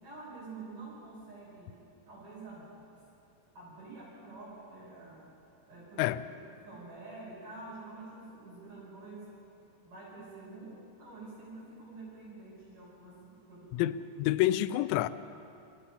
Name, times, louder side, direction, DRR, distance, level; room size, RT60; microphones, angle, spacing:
voice 1, 0.0-2.8 3.5-5.3 5.6-6.2 6.6-9.3 9.8-14.0, right 3 dB, 40° right, 7.5 m, -48 dB
voice 2, 13.7-15.1, left 14 dB, 90° left, 2.6 m, -28 dB
28.5 x 16.5 x 5.6 m
omnidirectional pair, 5.9 m